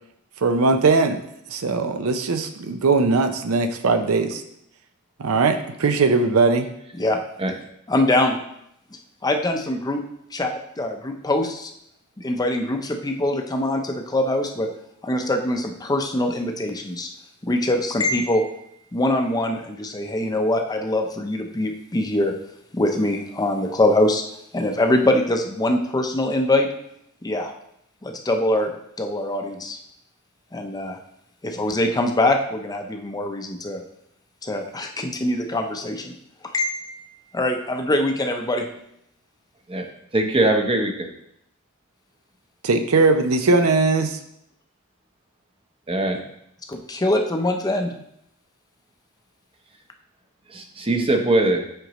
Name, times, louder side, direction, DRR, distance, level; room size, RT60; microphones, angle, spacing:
voice 1, 0.4-1.2 1.5-4.4 5.2-6.7 42.6-44.2, right 3 dB, 75° right, 8 dB, 0.6 m, -19 dB
voice 2, 7.9-8.4 9.2-10.0 10.3-11.7 12.2-14.7 15.0-17.1 17.4-18.6 18.9-22.3 22.7-24.2 24.5-26.7 27.2-27.5 28.0-28.7 29.0-29.8 30.5-31.0 31.4-33.8 34.4-36.1 36.5-38.6 46.7-47.9, left 1 dB, 20° left, 4 dB, 0.6 m, -23 dB
voice 3, 40.1-41.1 45.9-46.2 50.5-51.6, right 2 dB, 25° right, 3 dB, 0.8 m, -21 dB
7.8 x 5.1 x 3.0 m, 0.75 s
head